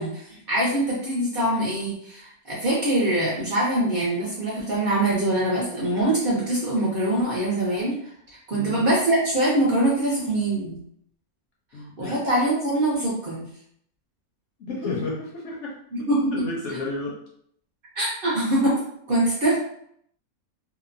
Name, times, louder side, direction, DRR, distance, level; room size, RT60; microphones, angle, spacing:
voice 1, 0.0-8.1 8.5-10.8 12.0-13.5 15.9-16.4 17.9-18.8 19.1-19.6, right 1 dB, 55° right, -6 dB, 0.7 m, -23 dB
voice 2, 8.5-8.8 11.7-12.2 14.6-15.8 16.3-17.2, left 2 dB, 65° left, -2 dB, 0.8 m, -31 dB
2.8 x 2.1 x 2.5 m, 0.68 s
omnidirectional pair, 1.6 m